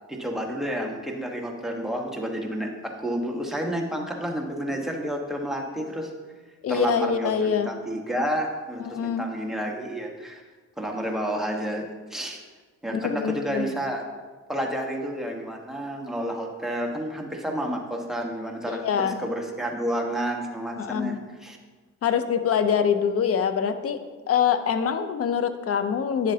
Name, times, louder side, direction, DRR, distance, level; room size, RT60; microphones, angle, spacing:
voice 1, 0.1-6.1 6.7-10.4 10.8-11.8 12.1-12.4 12.8-14.0 14.5-21.6, equal, ahead, 0 dB, 1.3 m, -30 dB
voice 2, 6.6-7.7 8.9-9.3 12.9-13.7 18.7-19.2 20.8-21.2 22.0-24.0 24.3-26.3, left 7 dB, 50° left, 10 dB, 0.7 m, -24 dB
9.8 x 7.3 x 2.8 m, 1.4 s
cardioid pair, 90°, 30 cm